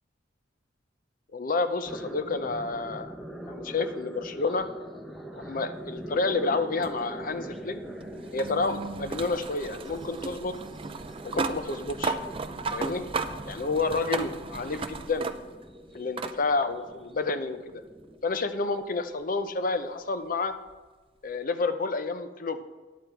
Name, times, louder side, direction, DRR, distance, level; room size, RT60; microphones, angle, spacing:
voice 1, 1.3-3.1 3.4-4.7 5.4-7.7 8.3-10.5 11.2-12.2 12.7-13.0 13.5-15.3 15.9-17.8 18.2-20.5 21.2-22.6, left 3 dB, 45° left, 10 dB, 0.6 m, -29 dB
sound 1, 1.9-18.2, right 1 dB, ahead, 0.8 m, -43 dB
sound 2, 6.8-15.7 16.2-16.4 17.7-17.8 20.7-20.8, right 4 dB, 30° right, 0.4 m, -35 dB
10.0 x 8.0 x 4.5 m, 1.3 s
head